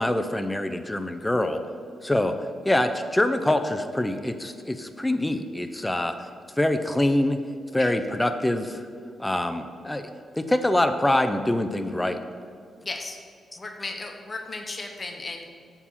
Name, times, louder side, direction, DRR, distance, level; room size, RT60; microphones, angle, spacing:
voice 1, 0.0-1.6 2.0-2.3 2.6-6.1 6.6-7.4 7.7-8.8 9.2-10.1 10.3-12.2, left 1 dB, 10° left, 8 dB, 0.5 m, -24 dB
voice 2, 12.8-13.2 13.6-15.5, left 3 dB, 30° left, 3 dB, 0.9 m, -35 dB
6.8 x 4.8 x 5.6 m, 2.2 s
cardioid pair, 85°, 0 cm